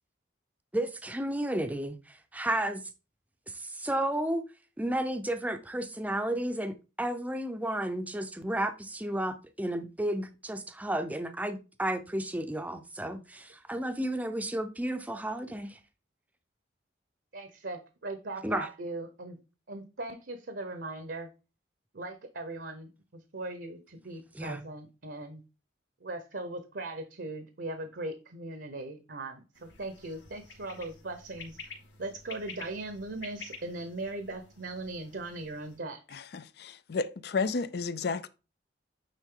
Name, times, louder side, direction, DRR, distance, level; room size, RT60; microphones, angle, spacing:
voice 1, 0.7-2.8 3.5-4.4 4.8-15.8 18.4-18.7 24.3-24.6, right 1 dB, 10° right, 0.6 m, -32 dB
voice 2, 17.3-19.4 19.7-21.3 21.9-25.4 26.0-31.6 32.0-36.2, right 2 dB, 65° right, 0.9 m, -39 dB
sound 1, 29.5-35.8, left 4 dB, 85° left, 2.3 m, -49 dB
voice 3, 36.1-36.5 36.9-38.3, left 4 dB, 60° left, 0.5 m, -31 dB
9.2 x 3.7 x 3.7 m
head